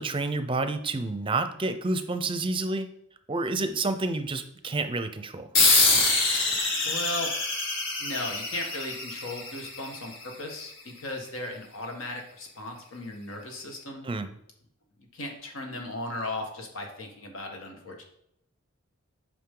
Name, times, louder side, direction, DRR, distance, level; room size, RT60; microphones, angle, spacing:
voice 1, 0.0-2.9 3.3-5.5 14.0-14.3, right 3 dB, 25° right, 9 dB, 0.5 m, -29 dB
sound 1, 5.5-10.5, left 3 dB, 65° left, 2.3 m, -25 dB
voice 2, 6.8-7.3 8.0-10.1 10.4-14.1 15.1-18.0, left 1 dB, 85° left, 2 dB, 1.6 m, -36 dB
8.7 x 5.2 x 3.8 m, 0.77 s
head